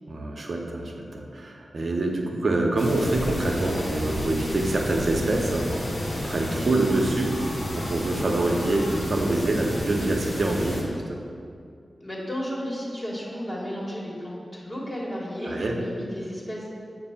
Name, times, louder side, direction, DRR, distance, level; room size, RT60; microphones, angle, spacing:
voice 1, 0.1-6.0 6.2-7.4 7.8-11.2 15.4-15.8, right 2 dB, 65° right, 1 dB, 0.8 m, -26 dB
sound 1, 2.8-10.8, equal, 70° left, 1.1 m, -31 dB
voice 2, 12.0-16.7, equal, 25° left, -5 dB, 1.5 m, -33 dB
7.4 x 2.6 x 5.6 m, 2.3 s
cardioid pair, 50°, 0 cm